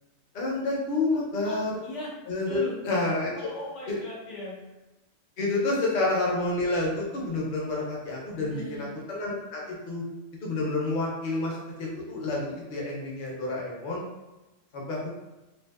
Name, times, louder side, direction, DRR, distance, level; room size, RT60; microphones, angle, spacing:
voice 1, 0.3-1.8 2.3-3.5 3.9-4.0 5.4-10.0 10.4-14.0 14.7-15.1, left 2 dB, 50° left, -3 dB, 0.8 m, -29 dB
voice 2, 1.4-2.1 2.5-2.8 3.4-4.6 8.3-8.9, left 1 dB, 80° left, -4 dB, 1.1 m, -39 dB
2.6 x 2.4 x 2.4 m, 1.1 s
omnidirectional pair, 1.2 m